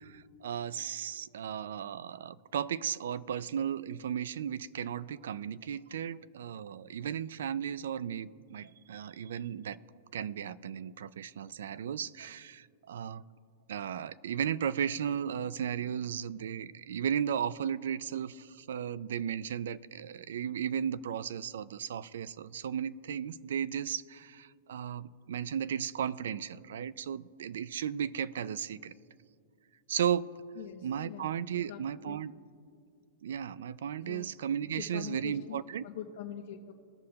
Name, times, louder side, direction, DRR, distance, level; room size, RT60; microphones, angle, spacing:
voice 1, 0.4-9.8 10.1-13.2 13.7-28.9 29.9-30.3 30.8-32.3 33.2-35.8, right 8 dB, 75° right, 19 dB, 0.3 m, -35 dB
voice 2, 30.6-31.3 31.7-32.2 34.1-34.3 34.8-36.7, left 10 dB, 55° left, 1 dB, 0.6 m, -44 dB
18.5 x 6.4 x 2.8 m, 2.3 s
supercardioid pair, 175°, 0 cm